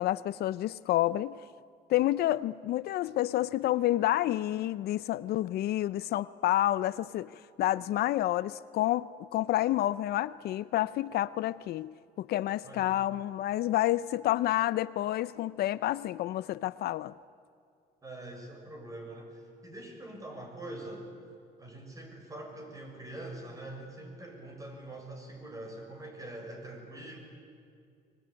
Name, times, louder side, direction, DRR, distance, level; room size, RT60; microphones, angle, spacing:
voice 1, 0.0-1.4 1.9-9.1 9.3-17.1, left 14 dB, 70° left, 0.6 m, -29 dB
voice 2, 18.0-21.1 21.6-27.2, right 1 dB, 20° right, 6.7 m, -44 dB
24.0 x 21.0 x 9.8 m
cardioid pair, 110°, 17 cm